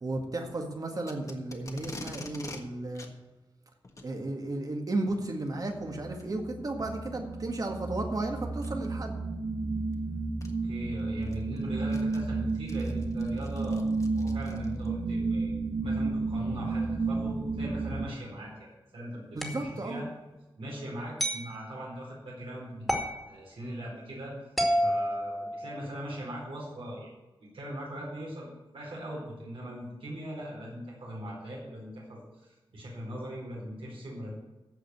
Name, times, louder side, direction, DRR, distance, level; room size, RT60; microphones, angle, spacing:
voice 1, 0.0-3.1 4.0-9.2 19.3-20.1, right 2 dB, 45° right, 3 dB, 1.9 m, -34 dB
Packing tape duct tape, 1.0-2.6 3.0-3.1 3.8-4.1 5.3-5.5 6.2-6.3 6.9-7.0 8.6-8.9 9.9-10.0 10.4-10.5 11.0-14.9, left 2 dB, 35° left, 1.4 m, -45 dB
sound 1, 5.6-18.1, right 3 dB, 65° right, 1.0 m, -32 dB
voice 2, 10.6-13.8 14.2-19.2 19.5-20.1 20.6-22.9 23.3-24.3 24.8-27.1 27.5-34.3, equal, 85° right, -4 dB, 4.6 m, -40 dB
sound 2, 19.4-19.7 21.2-21.5 22.9-23.2 24.6-26.0, equal, ahead, 2.2 m, -29 dB
14.5 x 5.2 x 7.9 m, 1.1 s
wide cardioid pair, 135°, 9 cm